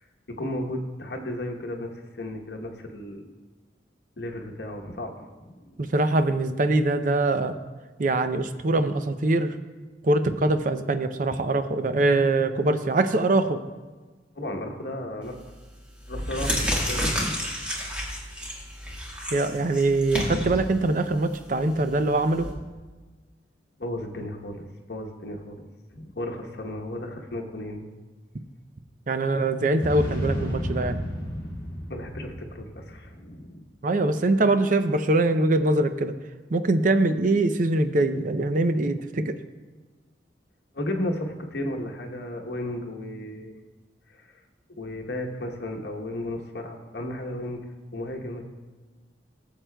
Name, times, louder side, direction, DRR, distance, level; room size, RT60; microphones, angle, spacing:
voice 1, 0.4-3.2 4.2-5.8 14.3-15.3 16.1-17.3 23.8-25.7 25.9-27.8 31.9-33.6 40.7-43.6 44.2-44.3 44.7-47.6 47.9-48.4, left 1 dB, 65° left, 2 dB, 1.0 m, -34 dB
voice 2, 5.8-7.5 8.0-9.5 10.0-13.6 19.3-22.5 29.1-31.0 33.8-36.1 36.5-39.4, right 2 dB, 45° right, 9 dB, 0.5 m, -23 dB
sound 1, 15.3-15.5 16.0-22.5, equal, 5° right, 1.6 m, -30 dB
sound 2, 29.8-33.3, equal, 25° left, 2.0 m, -32 dB
18.0 x 7.4 x 2.3 m, 1.3 s
head